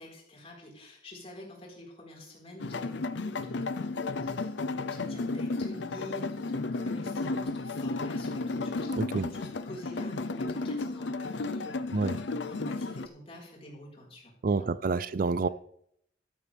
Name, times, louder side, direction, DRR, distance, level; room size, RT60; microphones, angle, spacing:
voice 1, 0.0-4.6 4.9-14.7, left 1 dB, 35° left, 4.6 m, -47 dB
sound 1, 2.6-13.1, left 3 dB, 90° left, 0.7 m, -33 dB
voice 2, 9.0-9.3 11.9-12.2 14.4-15.5, right 4 dB, 50° right, 0.4 m, -28 dB
13.0 x 12.5 x 3.5 m
head